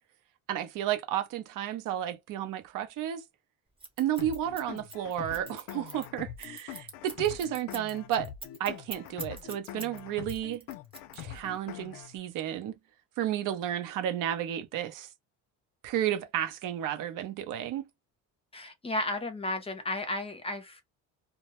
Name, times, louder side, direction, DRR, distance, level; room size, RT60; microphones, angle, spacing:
voice 1, 0.5-3.2 4.0-8.3 8.6-10.6 11.2-12.7 13.2-15.1 15.8-17.8, right 11 dB, 70° right, 0.6 m, -32 dB
Scissors, 3.8-10.0 10.3-11.5, right 3 dB, 15° right, 0.8 m, -43 dB
sound 1, 4.2-12.2, left 11 dB, 75° left, 0.5 m, -43 dB
voice 2, 18.5-20.8, left 2 dB, 15° left, 0.6 m, -33 dB
2.2 x 2.1 x 2.8 m
cardioid pair, 115°, 33 cm